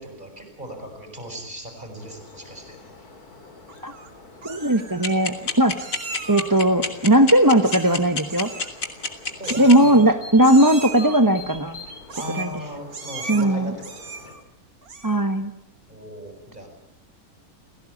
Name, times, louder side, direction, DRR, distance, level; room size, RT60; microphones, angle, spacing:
voice 1, 0.0-2.8 9.4-10.0 12.1-14.4 15.9-16.7, equal, 30° right, 4 dB, 7.7 m, -37 dB
sound 1, 2.0-14.3, left 2 dB, 75° left, 3.6 m, -45 dB
Meow, 3.7-4.1 4.4-5.1 5.8-6.6 7.6-8.0 8.3-8.7 9.4-10.1 10.4-11.2 12.1-12.6 12.9-13.4 13.8-14.4 14.8-15.2, right 4 dB, 70° right, 2.6 m, -37 dB
voice 2, 4.4-5.7 6.3-8.5 9.6-11.8 12.4-12.5 13.3-13.8 15.0-15.5, right 1 dB, 15° right, 7 dB, 1.1 m, -18 dB
sound 2, 5.0-9.7, left 4 dB, 60° left, 3.0 m, -26 dB
28.5 x 17.0 x 8.6 m, 0.85 s
omnidirectional pair, 1.6 m